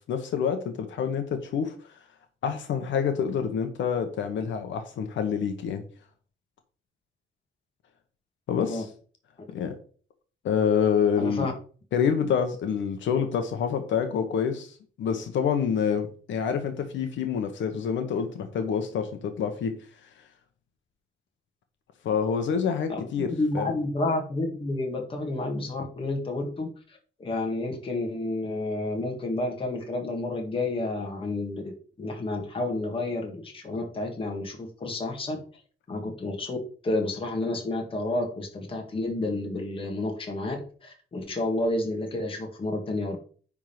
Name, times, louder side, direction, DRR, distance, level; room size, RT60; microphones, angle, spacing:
voice 1, 0.1-1.8 2.4-5.8 8.5-8.9 9.5-9.7 10.4-11.5 11.9-19.8 22.0-23.7, left 7 dB, 70° left, 6 dB, 1.1 m, -27 dB
voice 2, 11.2-11.5 22.9-26.7 27.2-35.4 35.9-36.6 36.8-40.6 40.8-43.2, left 2 dB, 25° left, 1 dB, 1.9 m, -30 dB
9.9 x 3.7 x 5.9 m, 0.42 s
cardioid pair, 170°, 20 cm